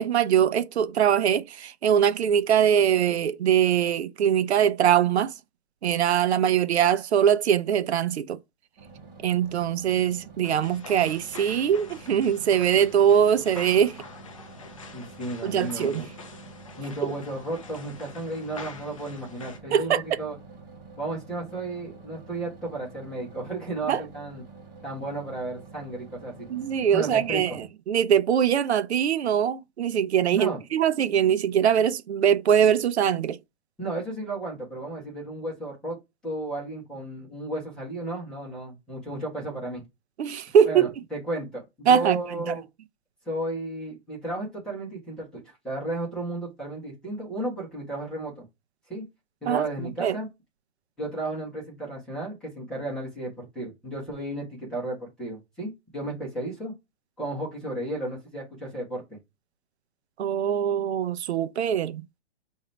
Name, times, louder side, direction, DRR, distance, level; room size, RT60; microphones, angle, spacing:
voice 1, 0.0-5.3 5.8-8.4 9.2-14.0 15.4-16.0 17.0-17.1 19.7-20.0 23.9-24.0 26.5-33.4 40.2-40.9 41.9-42.2 42.5-42.6 49.5-49.6 50.0-50.2 60.2-62.0, right 9 dB, 75° right, 0.6 m, -22 dB
sound 1, 8.8-27.7, right 4 dB, 20° right, 1.6 m, -48 dB
sound 2, 10.4-19.6, left 4 dB, 30° left, 0.5 m, -45 dB
voice 2, 14.9-16.1 16.8-20.4 21.0-24.4 24.8-26.5 26.9-27.4 30.3-30.6 33.8-36.0 36.2-39.8 40.6-42.6 43.2-48.4 48.9-49.0 49.4-50.3 51.0-56.7 57.2-59.2, right 2 dB, ahead, 1.2 m, -33 dB
4.9 x 2.7 x 3.2 m
hypercardioid pair, 180°, 33 cm